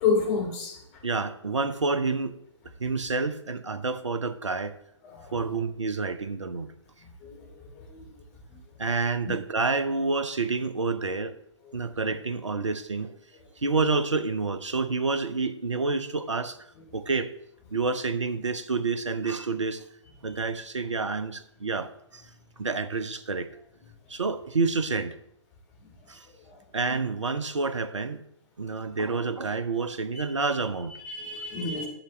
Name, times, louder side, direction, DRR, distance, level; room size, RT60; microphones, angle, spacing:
voice 1, 0.0-0.7 5.0-5.3 7.2-7.5 7.8-8.0 9.2-9.4 31.0-31.9, left 5 dB, 35° left, 2.8 m, -28 dB
voice 2, 1.0-2.4 2.8-4.7 5.3-6.7 8.8-11.3 11.7-13.2 13.6-16.6 16.9-17.3 17.7-19.8 20.2-22.2 22.6-23.5 24.1-25.2 26.1-26.3 26.7-28.2 28.6-30.9, right 4 dB, 80° right, 0.7 m, -28 dB
11.5 x 6.9 x 3.3 m
figure-of-eight pair, 120°, 15 cm